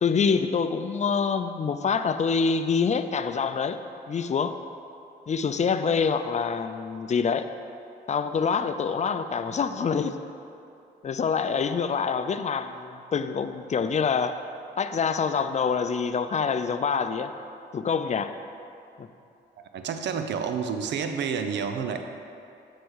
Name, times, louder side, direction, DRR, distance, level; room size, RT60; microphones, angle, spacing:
voice 1, 0.0-3.8 4.1-4.6 5.3-7.5 8.1-10.2 11.0-14.4 14.8-17.3 17.7-18.3 19.0-19.1, left 6 dB, 40° left, 10 dB, 0.5 m, -26 dB
voice 2, 19.7-22.0, right 6 dB, 80° right, 7 dB, 0.6 m, -29 dB
7.8 x 4.2 x 6.4 m, 2.6 s
cardioid pair, 70°, 18 cm